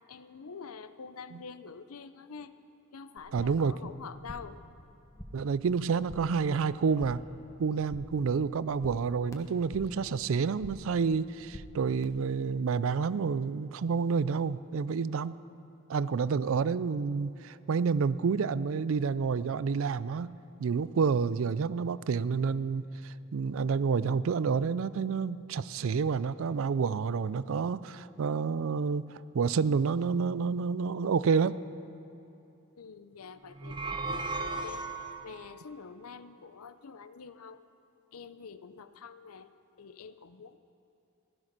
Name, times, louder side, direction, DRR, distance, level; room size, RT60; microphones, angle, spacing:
voice 1, 0.1-2.5 2.9-4.6 32.8-34.4 34.6-34.8 35.2-37.6 38.1-39.5 39.8-40.6, left 5 dB, 85° left, 12 dB, 0.6 m, -46 dB
sound 1, 3.2-3.7 4.0-4.6 4.9-5.5 5.8-6.4 6.7-7.4 7.6-8.3 8.5-10.0 10.3-11.0 11.2-12.0, equal, 15° left, 1.1 m, -47 dB
voice 2, 3.3-3.8 5.3-7.2 7.6-15.4 15.9-29.1 29.3-31.6, right 5 dB, 65° right, 17 dB, 0.4 m, -29 dB
sound 2, 33.5-35.4, right 3 dB, 20° right, 0.6 m, -35 dB
15.5 x 12.5 x 6.0 m, 2.9 s
head